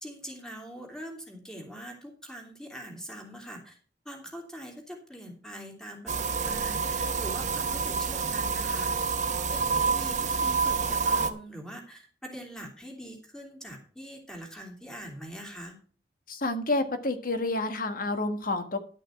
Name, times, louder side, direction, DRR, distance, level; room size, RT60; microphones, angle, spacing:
voice 1, 0.0-3.8 4.0-8.9 9.5-15.7, equal, 5° left, 1 dB, 3.0 m, -43 dB
sound 1, 6.1-11.3, right 5 dB, 45° right, 1.0 m, -28 dB
voice 2, 16.3-18.8, left 2 dB, 55° left, 8 dB, 1.5 m, -29 dB
11.5 x 6.4 x 5.8 m, 0.41 s
head